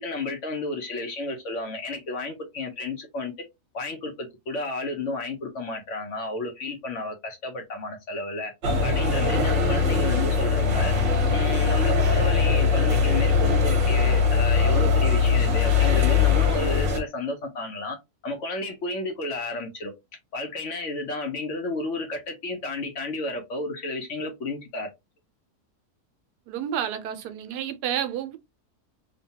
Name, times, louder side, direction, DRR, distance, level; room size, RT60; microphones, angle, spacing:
voice 1, 0.0-3.5 3.7-8.5 8.8-10.9 11.3-18.0 18.2-19.9 20.3-24.9, left 2 dB, 60° left, 0.9 m, -32 dB
sound 1, 8.6-17.0, left 5 dB, 50° right, 1.1 m, -21 dB
voice 2, 26.5-28.4, right 10 dB, 80° right, 1.1 m, -30 dB
3.0 x 2.2 x 2.7 m
omnidirectional pair, 1.7 m